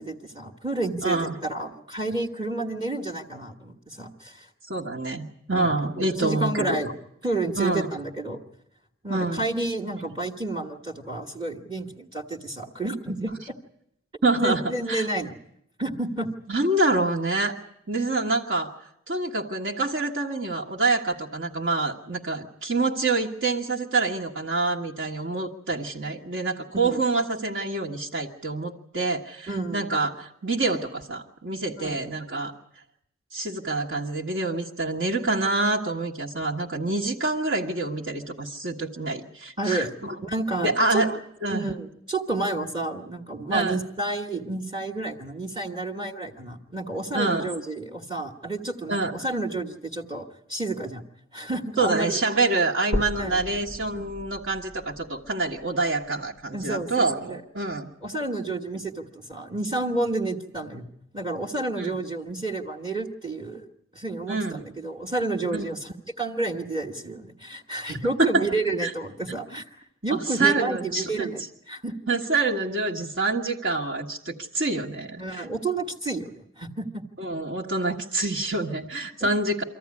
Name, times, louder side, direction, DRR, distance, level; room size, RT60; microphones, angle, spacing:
voice 1, 0.0-1.2 1.4-4.5 5.5-5.7 6.2-6.9 7.2-8.4 9.0-13.6 14.4-15.4 15.8-16.3 26.8-27.0 29.5-29.9 31.8-32.0 39.6-39.9 40.2-41.0 41.5-51.0 51.3-52.2 53.2-53.4 56.5-57.4 58.0-60.9 61.1-63.7 63.9-69.6 70.0-71.9 75.2-77.0 79.2-79.3, right 2 dB, 20° right, 0 dB, 1.3 m, -30 dB
voice 2, 1.0-1.4 4.7-6.8 7.6-7.9 9.1-9.5 14.2-15.1 16.5-17.5 17.9-18.7 19.1-32.5 33.3-40.1 40.6-41.7 43.5-43.8 47.1-47.6 48.9-49.2 51.8-57.9 61.8-62.0 64.3-64.7 65.5-65.7 68.2-68.5 68.8-68.9 70.1-71.3 72.1-75.5 77.2-79.6, right 3 dB, 55° right, -1 dB, 1.6 m, -26 dB
sound 1, 52.9-56.9 57.5-57.6 58.1-58.2 58.6-58.7 59.5-59.6, equal, 75° right, 1.8 m, -36 dB
25.0 x 14.5 x 9.7 m, 0.78 s
head